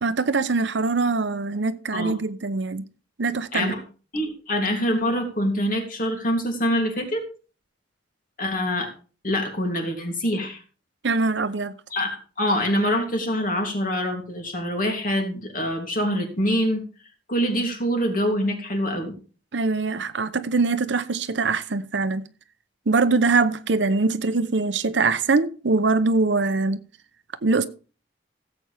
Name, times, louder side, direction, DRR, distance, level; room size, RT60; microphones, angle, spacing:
voice 1, 0.0-2.8 3.2-3.7 11.0-11.8 19.5-22.2 22.9-26.8 27.4-27.7, right 3 dB, 75° right, 0.8 m, -23 dB
voice 2, 4.1-7.2 8.4-8.9 9.2-10.6 11.9-16.8 17.3-19.1, equal, 50° left, 2.9 m, -25 dB
16.5 x 7.9 x 3.5 m
head